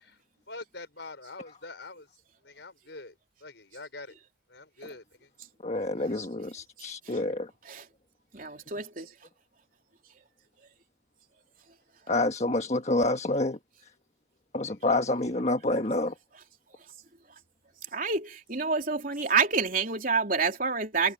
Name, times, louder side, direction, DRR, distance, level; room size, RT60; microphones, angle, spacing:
voice 1, 0.5-2.1 2.4-3.1 3.4-4.1 4.5-5.3 14.6-14.8, left 3 dB, 70° left, 5.0 m, -44 dB
voice 2, 5.6-7.5 12.1-13.6 14.5-16.1, left 2 dB, 35° left, 1.4 m, -28 dB
voice 3, 8.3-9.1 12.4-12.5 17.9-21.1, right 5 dB, 45° right, 3.7 m, -28 dB
head